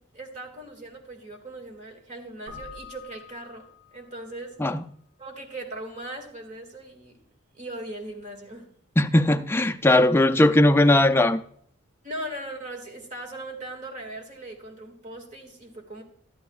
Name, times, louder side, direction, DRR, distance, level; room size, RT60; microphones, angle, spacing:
voice 1, 0.0-3.7 3.9-4.6 5.2-7.2 7.5-8.7 12.0-16.0, right 1 dB, 35° right, 1.9 m, -39 dB
Keyboard (musical), 2.5-4.3, left 5 dB, 70° right, 5.0 m, -45 dB
voice 2, 9.0-11.4, left 1 dB, 10° left, 0.4 m, -19 dB
13.0 x 11.5 x 2.3 m
head